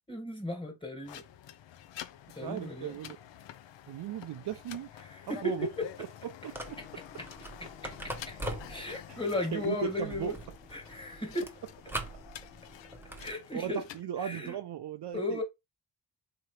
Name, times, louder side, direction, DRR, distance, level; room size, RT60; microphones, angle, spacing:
voice 1, 0.1-1.2 2.4-3.0 5.0-5.9 6.8-6.9 7.2-7.3 7.6-10.4 10.7-11.5 13.2-13.9 14.2-14.6 15.1-15.4, left 2 dB, 10° left, 1.7 m, -36 dB
sound 1, 1.0-14.0, left 11 dB, 70° left, 0.6 m, -49 dB
voice 2, 2.4-3.2 3.9-4.9 5.4-5.7 6.2-6.8 9.1-9.2 9.5-10.3 13.1-15.4, right 10 dB, 60° right, 0.6 m, -37 dB
sound 2, 6.5-13.3, right 1 dB, 5° right, 0.9 m, -43 dB
3.9 x 2.9 x 3.1 m
cardioid pair, 75°, 46 cm